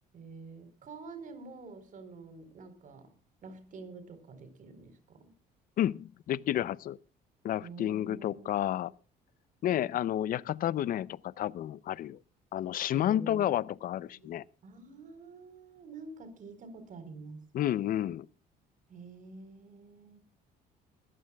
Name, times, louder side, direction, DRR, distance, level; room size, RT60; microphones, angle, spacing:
voice 1, 0.1-3.1 3.4-5.3 7.6-8.8 12.9-13.5 14.0-14.3 14.6-17.5 18.9-20.2, right 3 dB, 50° right, 4.2 m, -48 dB
voice 2, 5.8-7.0 7.4-8.9 9.6-12.2 12.5-14.4 17.5-18.3, left 12 dB, 55° left, 0.6 m, -31 dB
21.5 x 14.0 x 2.3 m
cardioid pair, 110°, 17 cm